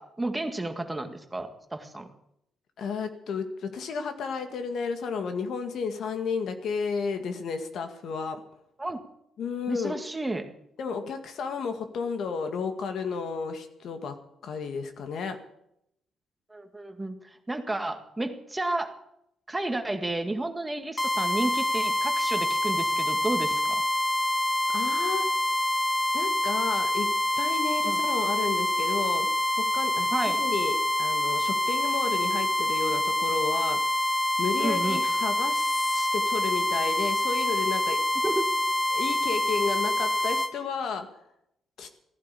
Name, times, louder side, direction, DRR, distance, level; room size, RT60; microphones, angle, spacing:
voice 1, 0.0-2.1 8.8-9.0 9.7-10.4 16.5-18.9 19.5-23.9 27.8-28.0 30.1-30.4 34.6-35.0 38.2-38.5, right 2 dB, 15° right, 6 dB, 1.9 m, -32 dB
voice 2, 2.8-8.4 9.4-10.0 10.8-14.2 14.4-15.4 24.7-25.2 26.1-27.1 27.4-29.3 29.5-33.8 34.4-38.0 38.9-41.1 41.8-41.9, left 5 dB, 65° left, 7 dB, 1.9 m, -32 dB
sound 1, 21.0-40.5, left 1 dB, 20° left, 1.1 m, -26 dB
15.5 x 11.0 x 8.4 m, 0.78 s
cardioid pair, 90°, 0 cm